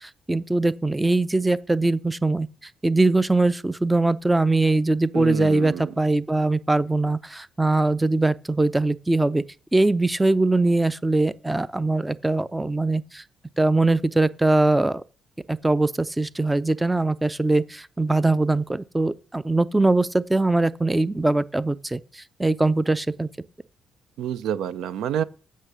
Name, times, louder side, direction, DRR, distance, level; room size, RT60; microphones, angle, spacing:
voice 1, 0.0-2.5 2.8-9.4 9.7-13.2 13.6-15.0 15.5-23.3, right 2 dB, 10° right, 0.4 m, -22 dB
voice 2, 5.1-5.9 24.2-25.2, right 9 dB, 85° right, 0.4 m, -28 dB
8.4 x 5.5 x 6.0 m
cardioid pair, 90°, 0 cm